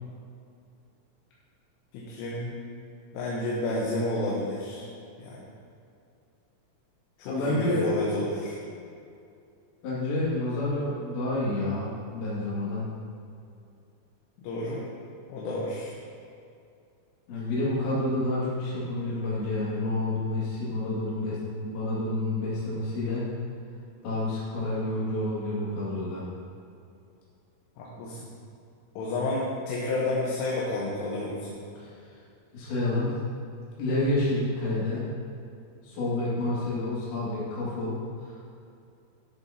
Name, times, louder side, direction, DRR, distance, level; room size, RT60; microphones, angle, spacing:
voice 1, 1.9-2.6 3.1-4.9 5.2-5.4 7.2-8.6 14.4-14.8 15.3-15.9 27.8-28.3 29.0-31.6, left 2 dB, 85° left, -5 dB, 3.6 m, -30 dB
voice 2, 7.3-8.0 9.8-12.9 17.3-23.3 24.0-26.2 31.8-32.1 32.5-33.1 33.8-35.1 35.8-38.5, left 2 dB, 70° left, -8 dB, 4.6 m, -29 dB
14.0 x 7.1 x 2.9 m, 2.5 s
omnidirectional pair, 5.5 m